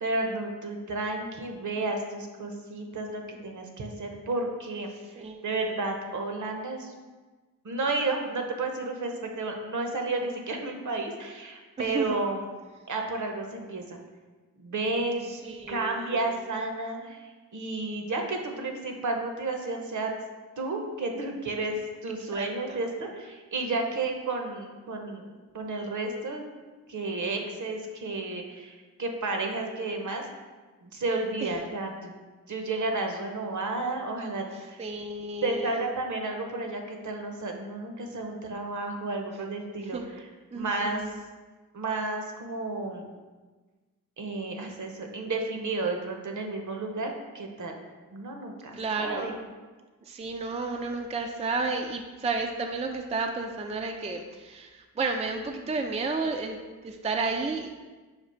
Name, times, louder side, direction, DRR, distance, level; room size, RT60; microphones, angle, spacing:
voice 1, 0.0-4.9 5.4-6.9 7.6-12.5 12.9-14.0 14.6-15.3 15.7-17.2 17.5-20.1 20.6-26.4 26.9-30.2 30.8-32.1 32.5-34.8 35.4-40.3 40.5-41.0 41.7-43.1 44.2-47.8 48.1-49.3, right 2 dB, 55° right, 3 dB, 0.8 m, -32 dB
voice 2, 5.2-5.8 11.8-12.2 15.3-16.3 22.3-22.8 31.4-31.5 34.5-35.9 39.9-40.1 40.5-41.2 48.7-49.4 50.1-56.6 56.8-57.7, right 3 dB, 20° right, 3 dB, 0.4 m, -32 dB
5.1 x 2.3 x 4.3 m, 1.3 s
supercardioid pair, 40°, 36 cm